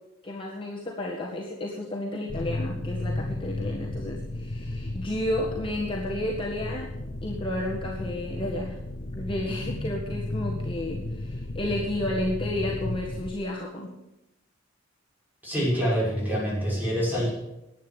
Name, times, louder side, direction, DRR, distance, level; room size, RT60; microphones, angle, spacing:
voice 1, 0.2-6.9 7.2-8.8 9.1-13.9, left 1 dB, 25° left, -3 dB, 1.8 m, -32 dB
sound 1, 2.3-13.3, left 1 dB, 40° left, 0.8 m, -34 dB
voice 2, 15.4-17.3, equal, 10° right, -6 dB, 6.4 m, -26 dB
11.0 x 9.1 x 9.4 m, 0.93 s
head